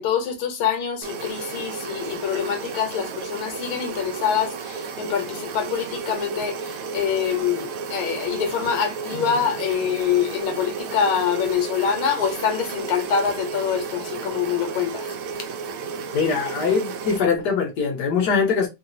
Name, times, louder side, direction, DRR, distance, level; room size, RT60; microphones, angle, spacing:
voice 1, 0.0-15.1, left 7 dB, 75° left, 1.7 m, -25 dB
sound 1, 1.0-17.2, right 5 dB, 80° right, 1.5 m, -33 dB
voice 2, 16.1-18.7, left 5 dB, 60° left, 1.2 m, -22 dB
3.9 x 2.4 x 2.6 m
omnidirectional pair, 2.4 m